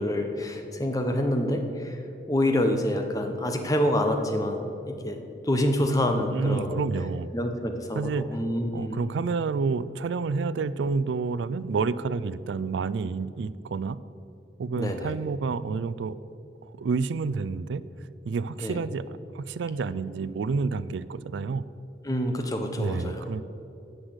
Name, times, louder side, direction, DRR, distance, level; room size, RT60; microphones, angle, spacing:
voice 1, 0.0-2.0 2.3-6.7 7.3-9.0 14.8-15.1 18.6-18.8 22.0-23.3, left 1 dB, 20° left, 4 dB, 0.9 m, -27 dB
voice 2, 6.3-7.3 7.9-8.2 8.7-14.0 14.6-16.2 16.6-17.8 18.3-21.6 22.8-23.4, right 4 dB, 85° right, 17 dB, 0.4 m, -29 dB
9.9 x 6.5 x 8.0 m, 2.8 s
head